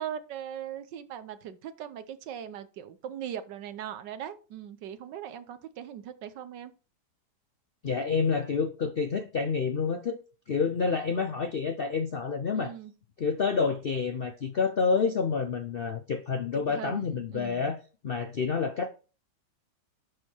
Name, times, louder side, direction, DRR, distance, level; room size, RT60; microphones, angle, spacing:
voice 1, 0.0-6.7 12.5-12.9 16.5-17.7, right 9 dB, 80° right, 1.4 m, -40 dB
voice 2, 7.8-10.2 10.5-12.7 13.2-17.8 18.0-18.9, left 5 dB, 65° left, 0.5 m, -28 dB
11.0 x 4.7 x 4.4 m
omnidirectional pair, 1.9 m